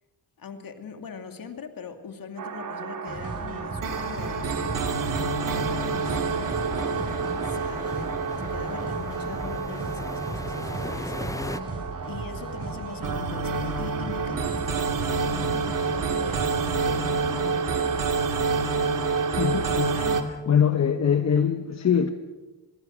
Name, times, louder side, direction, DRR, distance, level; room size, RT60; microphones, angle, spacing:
voice 1, 0.4-16.5 16.8-18.2, left 5 dB, 60° left, 6 dB, 2.5 m, -41 dB
sound 1, 2.4-20.2, right 4 dB, 55° right, 2.7 m, -28 dB
sound 2, 3.1-17.5, right 2 dB, 35° right, 8.0 m, -37 dB
sound 3, 4.0-11.6, left 2 dB, 10° left, 0.8 m, -40 dB
voice 2, 19.4-22.1, left 7 dB, 45° left, 8 dB, 1.2 m, -23 dB
25.0 x 21.5 x 6.4 m, 1.2 s
cardioid pair, 110°, 38 cm